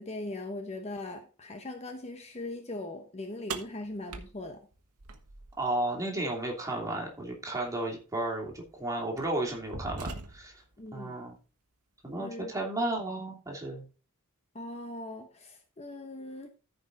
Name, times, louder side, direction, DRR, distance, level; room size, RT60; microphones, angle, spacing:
voice 1, 0.0-4.6 10.8-11.2 12.1-12.5 14.5-16.5, left 2 dB, 30° left, 1.1 m, -40 dB
sound 1, 3.5-5.7 7.5-7.6 8.5-8.7 9.2-10.7, right 4 dB, 75° right, 1.3 m, -41 dB
voice 2, 5.6-10.5 10.9-11.4 12.0-13.9, right 1 dB, 15° right, 2.9 m, -33 dB
14.0 x 5.4 x 4.0 m
head